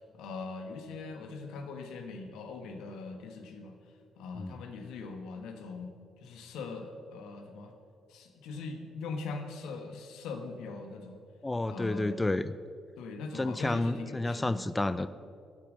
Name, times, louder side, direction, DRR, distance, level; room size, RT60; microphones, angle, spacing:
voice 1, 0.1-3.7 4.2-7.7 8.1-11.2 11.7-12.2 13.0-14.6, left 4 dB, 90° left, 5 dB, 1.4 m, -41 dB
voice 2, 11.4-12.6 13.3-15.1, left 2 dB, 15° left, 14 dB, 0.4 m, -30 dB
11.5 x 8.8 x 6.4 m, 2.4 s
cardioid pair, 90°, 0 cm